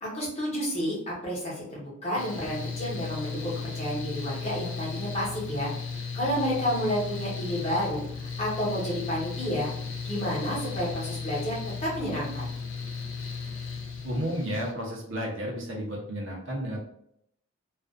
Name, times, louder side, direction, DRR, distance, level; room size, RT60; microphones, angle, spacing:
voice 1, 0.0-9.7 10.0-12.5, equal, 30° left, -6 dB, 0.9 m, -30 dB
Mechanical fan, 2.2-14.7, left 5 dB, 60° left, 0.5 m, -35 dB
voice 2, 14.0-16.8, equal, 60° right, -2 dB, 0.7 m, -32 dB
2.4 x 2.3 x 2.4 m, 0.72 s
head